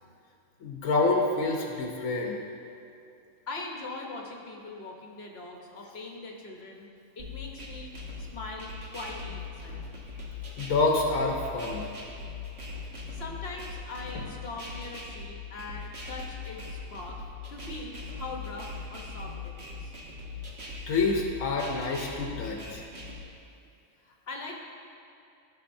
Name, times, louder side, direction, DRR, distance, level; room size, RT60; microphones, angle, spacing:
voice 1, 0.6-2.4 10.6-11.9 20.9-22.8, left 3 dB, 80° left, 0 dB, 1.2 m, -27 dB
voice 2, 3.5-6.9 7.2-9.9 13.1-17.2 17.5-19.9 24.0-24.6, left 2 dB, 55° left, 0 dB, 1.1 m, -41 dB
sound 1, 7.2-23.2, left 3 dB, 55° right, 1.5 m, -40 dB
14.5 x 5.5 x 2.6 m, 2.6 s
omnidirectional pair, 1.3 m